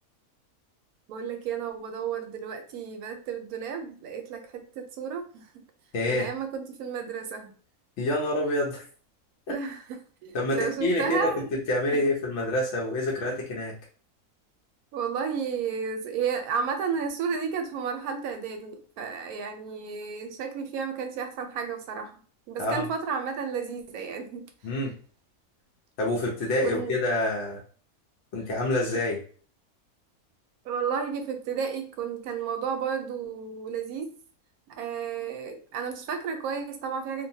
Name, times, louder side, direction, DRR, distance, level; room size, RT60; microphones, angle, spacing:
voice 1, 1.1-5.5 6.0-7.5 9.5-11.6 14.9-22.2 22.5-24.5 26.6-27.0 30.6-34.1 34.7-37.3, right 6 dB, 75° right, 6 dB, 1.0 m, -32 dB
voice 2, 5.9-6.3 8.0-8.9 9.5-9.6 10.3-11.4 11.7-13.8 22.6-22.9 24.6-24.9 26.0-27.6 28.3-29.2, left 1 dB, 60° left, -3 dB, 0.9 m, -27 dB
2.9 x 2.2 x 2.6 m, 0.42 s
omnidirectional pair, 1.6 m